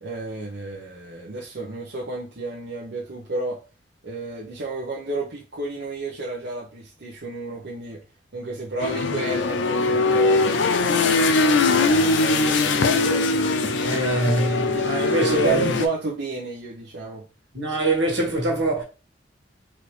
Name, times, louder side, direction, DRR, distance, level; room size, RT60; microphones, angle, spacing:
voice 1, 0.0-3.6 4.0-8.0 8.3-13.8 14.4-17.3, right 3 dB, 65° right, 0.8 m, -32 dB
sound 1, 8.8-15.9, left 3 dB, 85° left, 0.5 m, -21 dB
voice 2, 13.8-15.7 17.5-18.8, right 1 dB, 80° right, 1.6 m, -23 dB
4.2 x 2.8 x 3.2 m
head